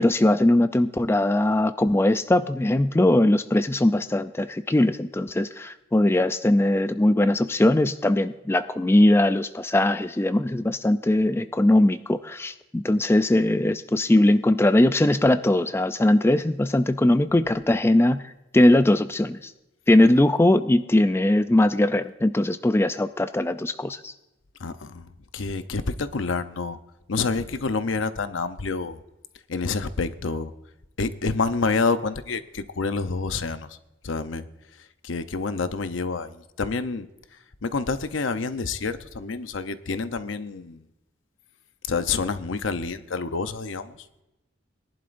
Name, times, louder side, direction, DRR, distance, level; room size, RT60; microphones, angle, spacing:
voice 1, 0.0-18.2 18.5-19.5 19.9-24.1, left 1 dB, 15° left, 11 dB, 0.4 m, -20 dB
voice 2, 24.6-26.8 27.1-29.0 29.5-30.5 31.0-33.8 34.0-34.5 35.0-37.1 37.6-40.8 41.9-44.1, left 4 dB, 85° left, 11 dB, 0.7 m, -28 dB
21.5 x 11.0 x 2.6 m, 0.96 s
head